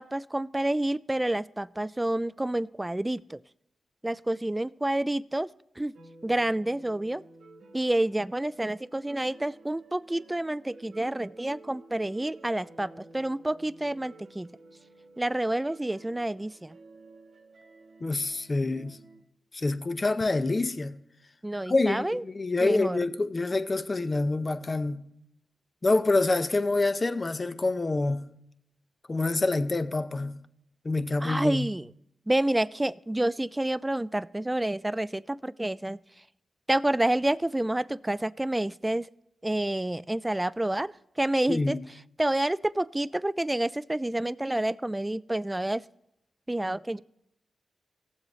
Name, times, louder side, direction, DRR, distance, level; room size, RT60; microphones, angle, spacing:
voice 1, 0.0-3.4 4.0-5.5 5.8-5.9 6.2-7.2 7.7-14.5 15.2-16.8 21.4-22.2 22.6-23.0 31.2-31.9 32.3-36.0 36.7-39.1 39.4-40.9 41.2-41.8 42.2-45.8 46.5-47.0, right 1 dB, 15° right, 0.3 m, -28 dB
sound 1, 5.9-19.2, right 2 dB, 75° right, 1.2 m, -53 dB
voice 2, 18.0-19.0 19.5-21.0 21.7-25.0 25.8-28.2 29.1-30.4 30.8-31.7 41.5-41.8, left 2 dB, 35° left, 0.6 m, -26 dB
17.5 x 7.4 x 3.2 m
cardioid pair, 60°, 0 cm